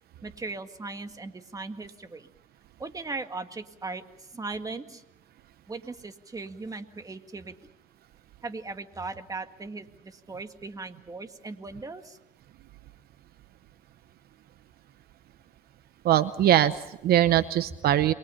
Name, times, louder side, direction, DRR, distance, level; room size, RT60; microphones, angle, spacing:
voice 1, 0.2-2.3 2.8-5.0 5.7-7.5 8.4-12.2, right 3 dB, 20° right, 8 dB, 1.8 m, -38 dB
voice 2, 16.0-18.1, right 12 dB, 65° right, 13 dB, 0.8 m, -22 dB
28.5 x 23.0 x 5.7 m, 0.84 s
cardioid pair, 110°, 17 cm